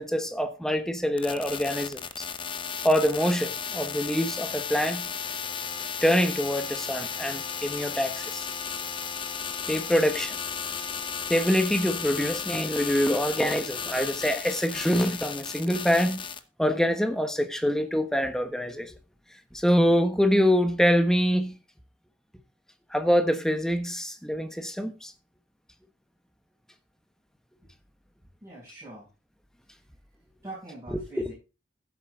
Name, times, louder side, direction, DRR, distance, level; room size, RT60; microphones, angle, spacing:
voice 1, 0.0-2.3 2.8-5.1 6.0-8.5 9.7-10.4 11.3-16.2 16.6-18.9 19.5-21.6 22.9-25.1 30.9-31.3, equal, 5° left, 1.3 m, -25 dB
sound 1, 1.2-16.4, left 7 dB, 25° left, 0.9 m, -34 dB
voice 2, 28.4-29.1 30.4-31.3, right 2 dB, 15° right, 7.5 m, -43 dB
15.5 x 7.9 x 3.8 m
head